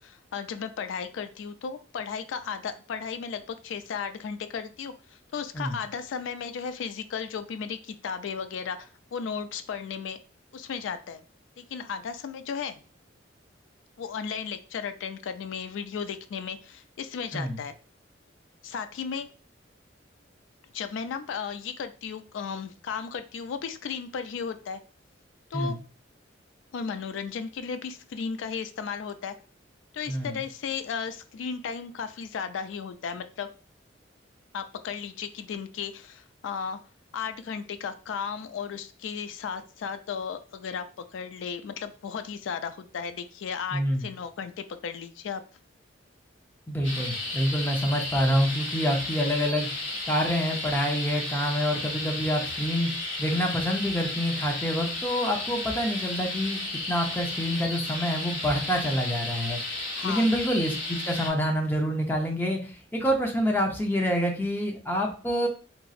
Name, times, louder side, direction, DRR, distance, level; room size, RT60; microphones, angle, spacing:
voice 1, 0.0-10.2 10.5-11.2 11.6-12.8 14.0-17.7 18.6-19.3 20.7-24.8 25.5-25.8 26.7-29.4 29.9-33.5 34.5-36.8 37.1-45.4 59.9-60.4, left 6 dB, 80° left, 9 dB, 0.3 m, -35 dB
voice 2, 43.7-44.1 46.7-49.7 50.1-52.9 53.2-65.5, equal, 10° left, 1 dB, 0.5 m, -27 dB
sound 1, 46.8-61.3, left 2 dB, 60° left, 1.4 m, -33 dB
2.9 x 2.6 x 2.3 m, 0.36 s
head